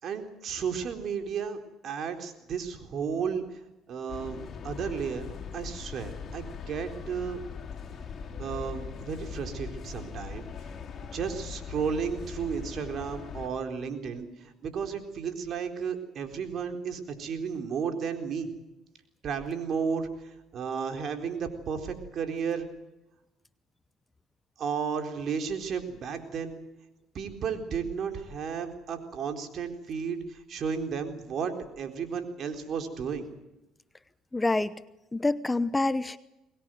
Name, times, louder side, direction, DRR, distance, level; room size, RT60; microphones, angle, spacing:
voice 1, 0.0-1.6 1.8-3.4 3.9-4.4 4.6-7.4 8.4-10.5 11.1-18.5 19.2-22.7 24.6-26.6 27.1-33.3, right 6 dB, 55° right, 6 dB, 4.0 m, -33 dB
sound 1, 4.1-13.5, left 6 dB, 45° left, 4.7 m, -40 dB
voice 2, 34.3-34.7 35.1-36.2, left 2 dB, 15° left, 15 dB, 0.9 m, -26 dB
23.5 x 20.0 x 7.8 m, 0.95 s
supercardioid pair, 80°, 0 cm